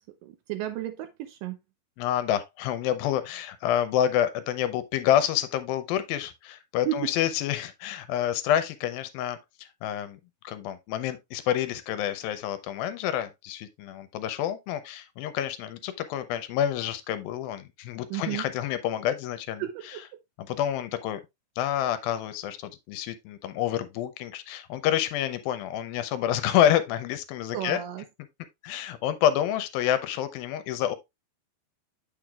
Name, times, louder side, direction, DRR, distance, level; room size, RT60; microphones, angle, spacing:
voice 1, 0.2-1.6 6.9-7.1 18.1-18.5 19.6-20.0 27.5-28.0, right 13 dB, 80° right, 2.1 m, -32 dB
voice 2, 2.0-10.2 10.4-20.0 20.5-21.2 21.6-27.8 28.6-31.0, left 11 dB, 80° left, 2.4 m, -28 dB
7.6 x 6.7 x 2.3 m
omnidirectional pair, 4.3 m